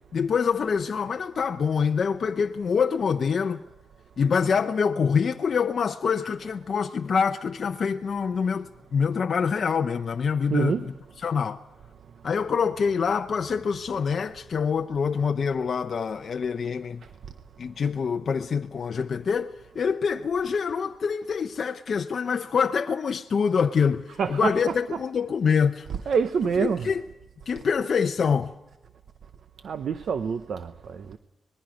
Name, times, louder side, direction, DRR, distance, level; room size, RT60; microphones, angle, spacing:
voice 1, 0.1-3.6 4.2-10.9 11.2-11.6 12.2-17.0 17.6-25.9 26.6-27.0 27.5-28.5, left 6 dB, 50° left, 0.6 m, -25 dB
voice 2, 10.5-10.9 17.0-17.1 24.1-25.1 25.9-27.0 27.6-27.7 29.6-31.2, right 6 dB, 60° right, 0.7 m, -27 dB
25.5 x 20.5 x 5.1 m
wide cardioid pair, 140°, 0 cm